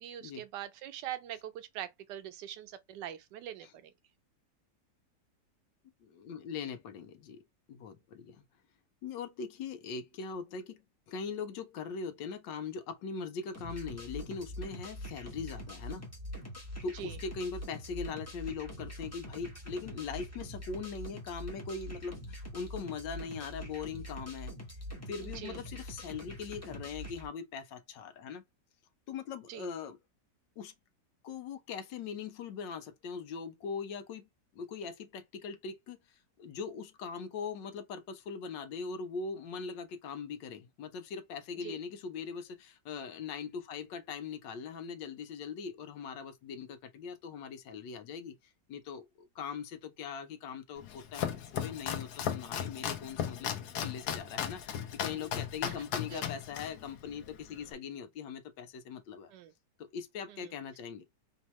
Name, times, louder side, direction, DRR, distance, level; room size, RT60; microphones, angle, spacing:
voice 1, 0.0-3.9 16.9-17.2 25.2-25.6 29.5-29.7 41.6-41.8 55.7-55.8 56.1-56.3 59.3-59.5 60.3-60.6, right 11 dB, 75° right, 1.3 m, -43 dB
voice 2, 6.0-7.4 7.7-8.4 9.0-10.8 11.1-16.0 16.8-24.5 25.1-28.4 29.1-30.0 30.6-30.7 31.2-34.3 34.5-36.0 36.4-48.3 48.7-53.5 53.8-59.3 59.9-61.0, left 5 dB, 90° left, 1.5 m, -41 dB
sound 1, 13.5-27.3, equal, 10° left, 0.9 m, -44 dB
Domestic sounds home sounds, 50.8-57.7, left 9 dB, 70° left, 1.2 m, -37 dB
4.4 x 2.8 x 3.0 m
omnidirectional pair, 1.9 m